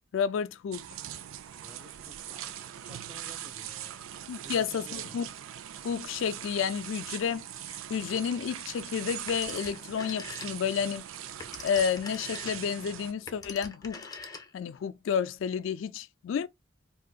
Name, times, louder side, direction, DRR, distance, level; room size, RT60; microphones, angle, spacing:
voice 1, 0.1-0.8 4.3-5.3 5.8-7.5 7.9-11.0 11.6-14.1 14.5-16.5, left 7 dB, 70° left, 0.3 m, -31 dB
sound 1, 0.7-13.1, right 11 dB, 85° right, 0.4 m, -41 dB
voice 2, 1.6-4.1 4.3-5.2, equal, 10° right, 0.9 m, -52 dB
Telephone, 9.3-10.8 11.2-14.8, left 4 dB, 20° left, 0.6 m, -44 dB
3.8 x 2.6 x 2.3 m
head